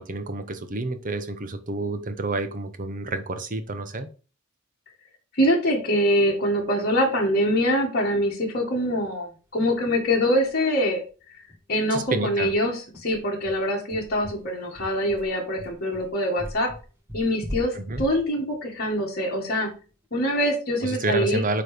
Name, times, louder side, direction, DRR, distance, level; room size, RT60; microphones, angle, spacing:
voice 1, 0.0-4.1 11.9-12.5 17.7-18.0 20.8-21.6, right 2 dB, 40° right, 9 dB, 0.9 m, -29 dB
voice 2, 5.3-11.0 11.7-16.7 17.1-19.7 20.1-21.4, equal, 45° left, -2 dB, 1.9 m, -24 dB
sound 1, 9.6-9.7 10.0-10.1 10.4-10.6 10.9-11.0 11.5-19.9, left 1 dB, 10° right, 1.3 m, -40 dB
9.2 x 3.2 x 5.0 m, 0.36 s
head